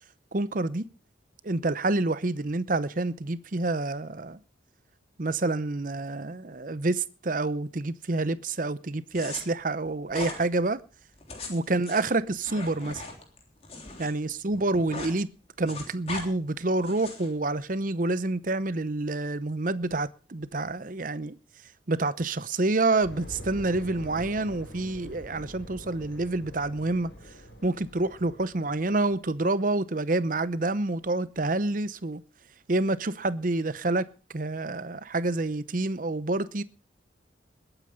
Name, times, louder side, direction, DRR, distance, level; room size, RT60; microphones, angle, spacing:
voice 1, 0.3-0.8 1.4-4.4 5.2-10.8 11.5-13.0 14.0-15.3 15.6-21.4 21.9-27.1 27.6-32.2 32.7-34.1 34.3-36.6, right 2 dB, 45° right, 0.8 m, -28 dB
sound 1, 9.1-9.4 10.1-10.4 11.1-14.1 14.4-15.1 15.4-16.2 16.8-17.3, left 3 dB, 35° left, 3.4 m, -39 dB
sound 2, 23.0-29.3, equal, 70° left, 5.6 m, -45 dB
21.0 x 9.1 x 5.1 m
head